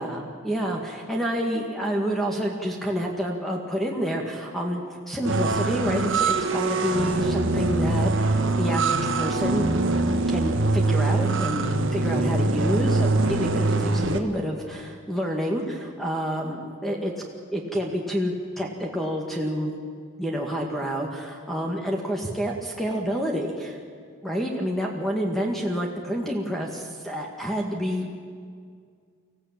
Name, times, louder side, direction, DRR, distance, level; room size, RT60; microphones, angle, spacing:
voice 1, 0.0-9.7 10.3-11.6 11.9-17.1 17.5-19.7 20.2-23.8 24.2-28.1, equal, ahead, 0 dB, 1.8 m, -28 dB
sound 1, 5.2-14.2, right 3 dB, 60° right, 1.5 m, -23 dB
24.5 x 16.0 x 8.9 m, 2.1 s
head